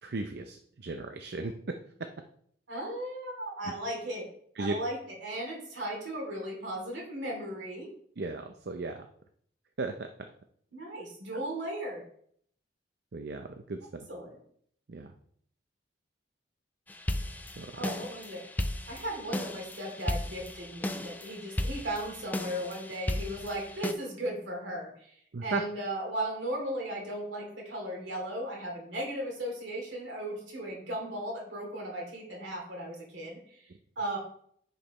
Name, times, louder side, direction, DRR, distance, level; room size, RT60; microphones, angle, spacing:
voice 1, 0.0-1.5 3.6-3.7 4.6-4.7 8.2-9.1 9.8-10.1 13.1-14.1 14.9-15.1 17.6-17.9 25.3-25.6, right 3 dB, 60° right, 6 dB, 0.6 m, -36 dB
voice 2, 2.7-4.3 4.6-7.9 10.7-12.0 14.1-14.4 17.8-18.4 18.9-33.7 34.0-34.2, right 1 dB, 75° right, 0 dB, 2.7 m, -36 dB
sound 1, 16.9-23.9, left 1 dB, 10° left, 0.4 m, -35 dB
10.5 x 5.4 x 3.0 m, 0.63 s
head